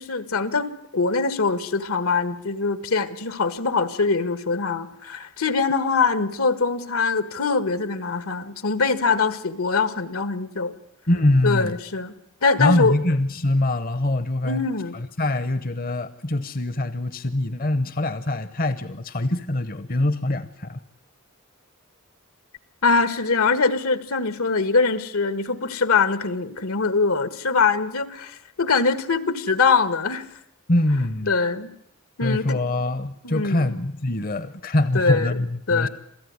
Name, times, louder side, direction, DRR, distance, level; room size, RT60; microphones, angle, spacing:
voice 1, 0.0-10.7 11.4-12.1 12.4-13.0 14.4-15.0 22.8-30.3 31.3-31.7 32.2-32.6 33.2-33.7 34.9-35.4 35.7-35.9, left 4 dB, 80° left, 13 dB, 1.6 m, -23 dB
voice 2, 11.1-11.8 12.6-14.6 14.9-20.8 30.7-31.3 32.2-35.9, left 1 dB, 40° left, 13 dB, 0.9 m, -23 dB
27.0 x 16.0 x 9.6 m, 0.77 s
head